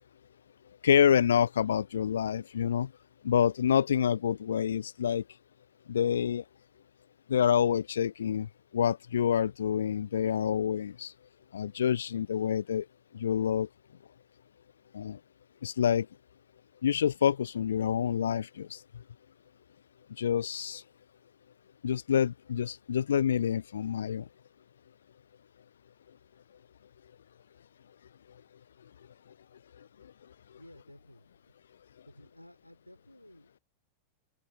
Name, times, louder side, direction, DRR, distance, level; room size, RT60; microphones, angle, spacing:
voice 1, 0.8-2.9 3.2-5.2 5.9-6.4 7.3-8.5 8.7-11.1 11.5-12.8 13.1-13.7 14.9-15.2 15.6-16.1 16.8-18.8 20.2-20.8 21.8-24.2, left 8 dB, 65° left, 0.3 m, -27 dB
voice 2, 30.5-31.6 32.0-33.6, left 1 dB, 90° left, 5.3 m, -55 dB
figure-of-eight pair, 90°, 0 cm